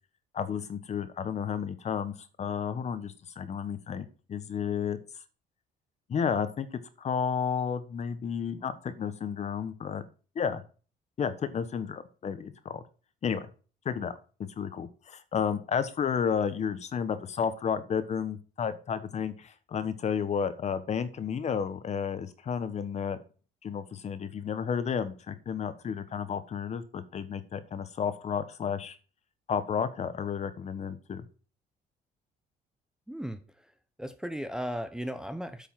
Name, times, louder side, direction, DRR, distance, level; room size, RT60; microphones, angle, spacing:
voice 1, 0.3-5.0 6.1-10.0 10.3-10.6 11.2-12.8 13.2-13.5 13.8-14.1 14.6-23.2 23.6-29.0 29.5-31.2, left 7 dB, 40° left, 1.2 m, -32 dB
voice 2, 33.1-33.4 34.0-35.7, equal, 5° right, 0.7 m, -35 dB
8.7 x 5.5 x 5.8 m
cardioid pair, 110°, 17 cm